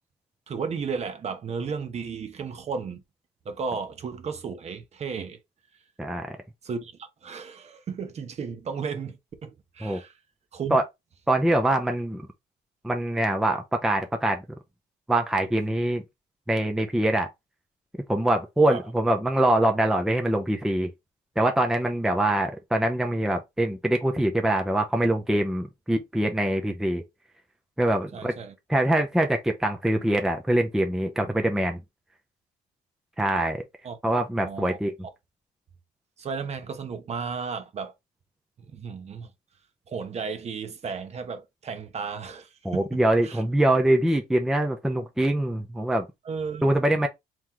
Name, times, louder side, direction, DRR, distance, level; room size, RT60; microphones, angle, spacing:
voice 1, 0.5-3.0 3.4-5.4 6.6-6.9 7.2-10.1 10.5-10.8 18.7-18.8 28.1-28.5 33.8-34.0 34.4-34.8 36.2-37.9 38.7-39.3 39.9-43.4 46.2-46.6, right 5 dB, 40° right, 0.9 m, -34 dB
voice 2, 11.3-12.2 12.8-14.4 15.1-16.0 16.5-17.3 18.1-20.9 21.4-27.0 27.8-28.3 28.7-31.8 33.2-33.6 34.0-34.9 42.6-46.1 46.6-47.1, right 1 dB, 5° right, 0.5 m, -24 dB
3.1 x 3.0 x 3.7 m
cardioid pair, 110°, 17 cm